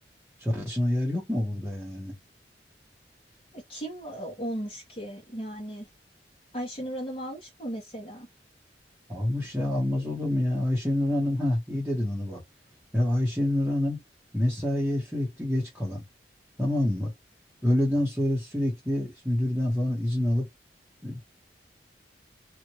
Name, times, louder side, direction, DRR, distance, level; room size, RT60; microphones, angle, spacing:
voice 1, 0.4-2.1 9.1-12.4 12.9-14.0 14.3-16.0 16.6-17.1 17.6-20.5 21.0-21.2, left 1 dB, 5° right, 1.1 m, -27 dB
voice 2, 3.5-5.9 6.5-8.3, right 1 dB, 30° left, 1.3 m, -36 dB
2.8 x 2.5 x 3.0 m
head